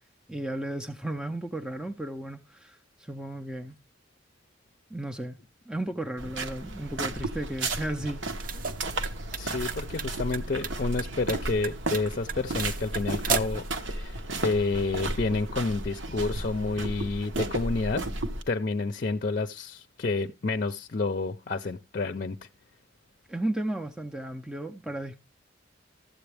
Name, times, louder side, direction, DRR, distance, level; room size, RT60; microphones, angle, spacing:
voice 1, 0.3-3.7 4.9-5.4 5.7-8.2 23.3-25.2, right 1 dB, 5° right, 0.5 m, -34 dB
sound 1, 6.2-18.4, right 2 dB, 75° right, 1.0 m, -34 dB
sound 2, 8.2-13.7, right 6 dB, 45° right, 0.7 m, -35 dB
voice 2, 9.4-18.0 18.5-22.4, left 3 dB, 45° left, 0.5 m, -29 dB
13.5 x 7.9 x 3.4 m
head